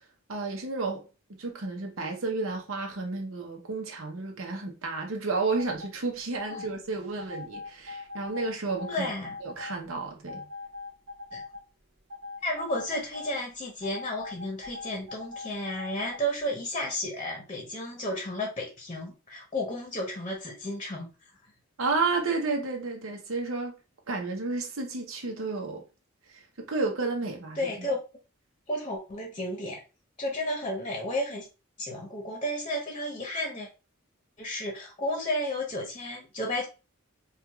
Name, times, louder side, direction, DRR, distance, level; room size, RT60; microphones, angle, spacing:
voice 1, 0.3-1.1 1.4-9.1 9.4-10.4 21.8-23.8 24.1-25.8 26.3-27.6, right 3 dB, 85° right, 0.8 m, -31 dB
sound 1, 5.3-5.9 6.4-6.7 7.2-9.8 10.3-11.6 12.1-13.3 13.8-16.2, left 3 dB, 55° right, 1.3 m, -41 dB
voice 2, 8.9-9.4 11.3-11.4 12.4-21.1 27.6-28.0 28.7-29.8 30.2-31.5 31.8-33.7 34.4-36.6, left 1 dB, 25° left, 0.9 m, -32 dB
4.5 x 2.4 x 2.3 m
head